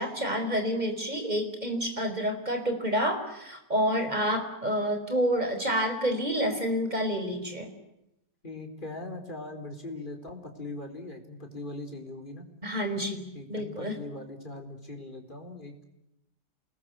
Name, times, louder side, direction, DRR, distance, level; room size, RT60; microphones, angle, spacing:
voice 1, 0.0-7.7 12.6-13.9, equal, 25° right, 7 dB, 4.9 m, -29 dB
voice 2, 8.4-12.5 13.3-15.7, left 2 dB, 25° left, 5 dB, 4.5 m, -40 dB
28.0 x 21.0 x 9.6 m, 0.87 s
omnidirectional pair, 1.9 m